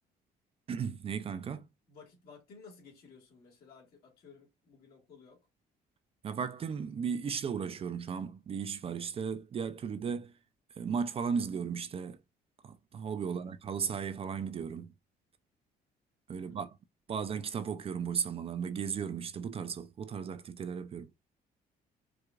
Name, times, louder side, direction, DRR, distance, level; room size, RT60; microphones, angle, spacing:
voice 1, 0.7-1.7 6.2-10.3 10.8-12.2 12.6-14.9 16.3-16.8 17.1-21.1, right 6 dB, 35° right, 0.4 m, -35 dB
voice 2, 1.9-5.5 13.2-13.5 16.3-16.7, left 5 dB, 65° left, 1.7 m, -56 dB
4.7 x 2.4 x 2.4 m
cardioid pair, 110°, 17 cm